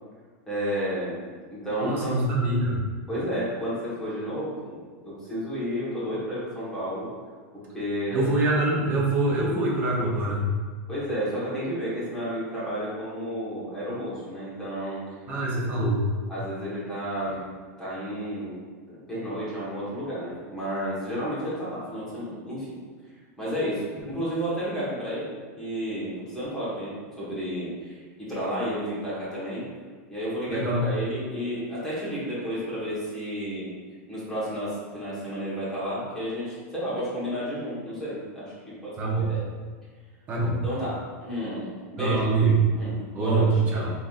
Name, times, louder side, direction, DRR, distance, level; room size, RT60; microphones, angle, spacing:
voice 1, 0.5-1.2 1.5-2.1 3.1-7.1 7.5-8.3 10.9-15.0 16.3-17.4 17.8-18.6 19.1-22.7 23.4-29.6 30.1-33.7 34.1-39.4 40.6-42.2 42.8-43.9, equal, 5° left, -10 dB, 1.3 m, -31 dB
voice 2, 1.8-2.8 8.1-10.5 15.3-16.0 24.0-24.1 30.5-30.9 39.0-39.3 40.3-40.6 42.0-42.5 43.1-43.9, right 2 dB, 20° right, -3 dB, 0.7 m, -24 dB
3.8 x 3.7 x 2.5 m, 1.5 s
supercardioid pair, 160°, 8 cm